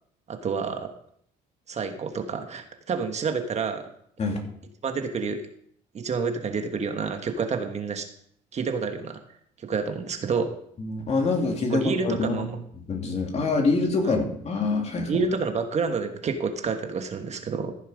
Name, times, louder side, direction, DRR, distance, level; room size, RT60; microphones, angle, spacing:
voice 1, 0.3-0.9 1.7-3.9 4.8-5.4 5.9-8.1 8.5-9.2 9.6-10.5 11.7-12.5 14.0-14.2 15.1-17.7, right 5 dB, 40° right, 6 dB, 1.4 m, -28 dB
voice 2, 10.8-12.5 12.9-15.2, left 3 dB, 40° left, 2 dB, 2.8 m, -25 dB
15.0 x 7.2 x 5.1 m, 0.68 s
cardioid pair, 110°, 17 cm